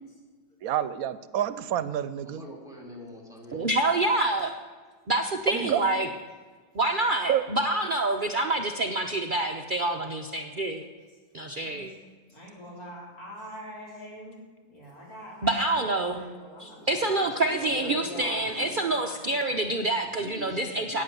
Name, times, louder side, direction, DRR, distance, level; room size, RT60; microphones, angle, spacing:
voice 1, 0.6-2.4 5.5-5.8 7.3-7.4, right 10 dB, 80° right, 14 dB, 1.1 m, -28 dB
voice 2, 2.2-3.7 16.8-18.8 20.1-21.0, equal, ahead, -3 dB, 3.1 m, -43 dB
voice 3, 3.5-4.5 5.1-6.1 6.7-10.8 11.3-11.9 15.4-16.2 16.6-21.0, right 2 dB, 45° right, 4 dB, 0.7 m, -27 dB
voice 4, 5.5-5.9 11.6-12.0 12.3-14.4 14.7-17.1 17.7-18.4 18.7-19.5, equal, 85° left, -3 dB, 4.2 m, -43 dB
14.0 x 9.4 x 6.8 m, 1.5 s
omnidirectional pair, 1.5 m